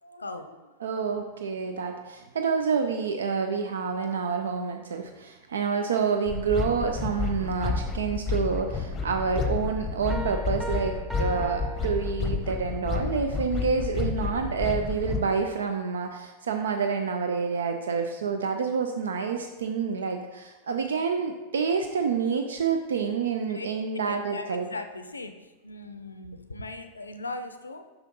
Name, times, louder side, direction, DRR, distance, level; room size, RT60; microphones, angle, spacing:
voice 1, 0.0-0.8 1.8-1.9 6.1-6.4 19.4-19.5 23.5-23.7 23.9-27.9, left 2 dB, 80° left, 9 dB, 0.5 m, -39 dB
voice 2, 0.8-24.7, right 5 dB, 65° right, 5 dB, 0.4 m, -28 dB
sound 1, 6.3-15.3, left 5 dB, 25° left, 0.8 m, -30 dB
sound 2, 10.1-12.6, right 1 dB, 5° right, 0.5 m, -39 dB
5.7 x 5.6 x 3.9 m, 1.1 s
figure-of-eight pair, 90°, 0 cm